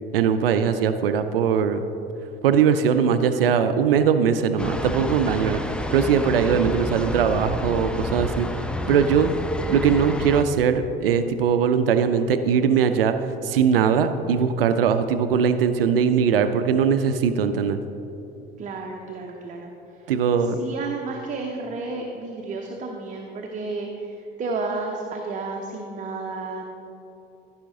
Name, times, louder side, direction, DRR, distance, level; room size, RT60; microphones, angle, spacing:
voice 1, 0.1-1.8 2.4-8.5 8.9-9.3 9.7-13.1 13.4-17.8 20.1-20.6, right 7 dB, 70° right, 10 dB, 0.5 m, -20 dB
sound 1, 4.6-10.4, left 1 dB, 5° left, 0.4 m, -30 dB
voice 2, 18.6-19.7 20.6-26.8, right 3 dB, 25° right, 1 dB, 0.8 m, -32 dB
14.5 x 5.7 x 3.8 m, 2.9 s
figure-of-eight pair, 65°, 30 cm